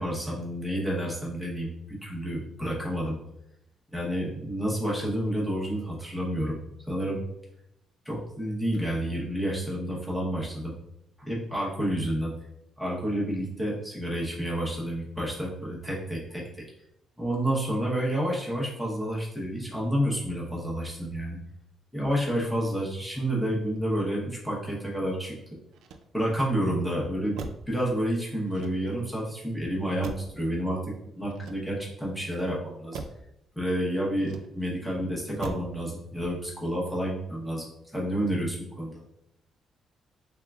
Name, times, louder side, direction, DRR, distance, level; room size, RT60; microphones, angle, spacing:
voice 1, 0.0-3.2 3.9-7.2 8.0-10.7 11.2-12.4 12.8-16.8 17.2-21.4 21.9-25.6 26.1-33.0 33.5-39.0, equal, 5° left, -4 dB, 0.9 m, -30 dB
Motor vehicle (road), 25.7-26.5 27.3-27.8 28.5-29.2 30.0-30.5 31.3-32.0 32.9-33.3 34.2-34.8 35.4-35.8 36.1-36.6, right 3 dB, 90° right, 0.4 m, -42 dB
3.6 x 3.4 x 2.3 m, 0.82 s
cardioid pair, 165°, 0 cm